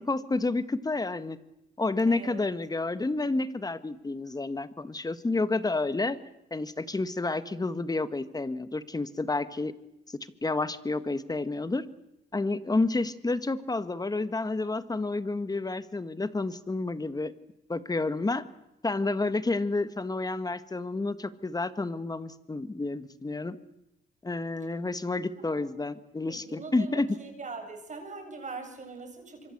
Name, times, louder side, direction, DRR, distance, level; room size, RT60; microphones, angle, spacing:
voice 1, 0.0-1.4 1.8-6.2 6.5-9.7 10.4-11.8 12.3-17.3 17.7-18.4 18.8-23.6 24.2-27.1, left 3 dB, 20° left, 13 dB, 1.8 m, -30 dB
voice 2, 2.0-2.5 25.4-25.7 26.2-29.5, right 4 dB, 40° right, 5 dB, 7.6 m, -42 dB
25.5 x 24.5 x 8.1 m, 0.85 s
cardioid pair, 90°, 20 cm